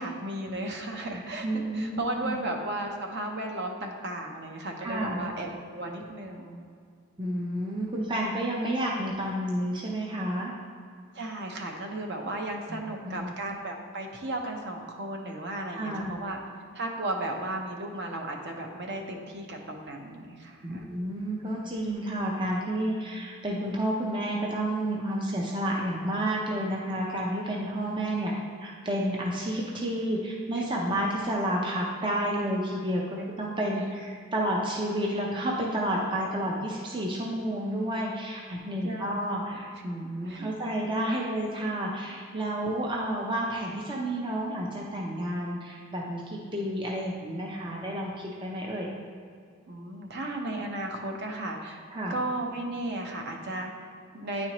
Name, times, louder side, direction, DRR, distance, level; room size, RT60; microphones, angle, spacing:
voice 1, 0.0-6.6 11.1-16.4 16.7-20.9 30.5-30.6 38.8-39.6 40.0-40.5 49.7-51.8 52.1-54.5, right 1 dB, 50° right, 2 dB, 0.7 m, -35 dB
voice 2, 1.4-2.4 4.8-5.2 7.2-10.5 12.7-12.8 13.0-13.3 15.7-16.1 20.6-28.3 28.6-48.9 51.9-52.1, right 1 dB, 20° right, -2 dB, 0.5 m, -30 dB
9.5 x 4.3 x 3.0 m, 2.2 s
head